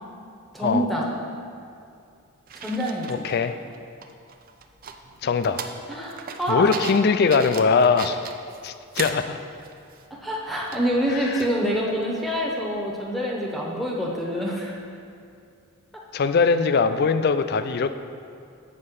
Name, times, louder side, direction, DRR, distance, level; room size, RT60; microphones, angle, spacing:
voice 1, 0.5-1.1 2.5-3.3 5.9-6.7 10.2-14.7, equal, ahead, -3 dB, 0.9 m, -26 dB
sound 1, 2.5-3.8 4.0-9.3 9.6-10.0 10.7-11.6 12.0-12.1, right 6 dB, 40° right, 0.4 m, -38 dB
voice 2, 3.1-3.5 5.2-5.6 6.5-8.3 8.6-9.4 11.1-11.5 16.1-17.9, left 5 dB, 45° left, 10 dB, 0.3 m, -21 dB
7.4 x 5.4 x 6.5 m, 2.4 s
head